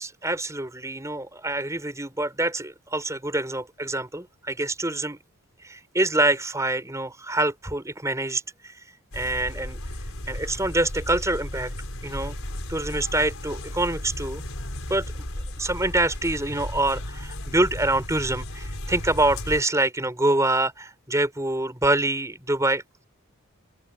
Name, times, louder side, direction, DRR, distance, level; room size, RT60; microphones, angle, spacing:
voice 1, 0.0-5.2 5.6-8.7 9.1-9.8 10.3-11.7 12.0-12.3 12.7-14.4 14.9-15.0 15.6-22.8, right 2 dB, 15° right, 4.7 m, -25 dB
sound 1, 9.1-19.6, left 1 dB, 70° left, 5.0 m, -35 dB
open air
head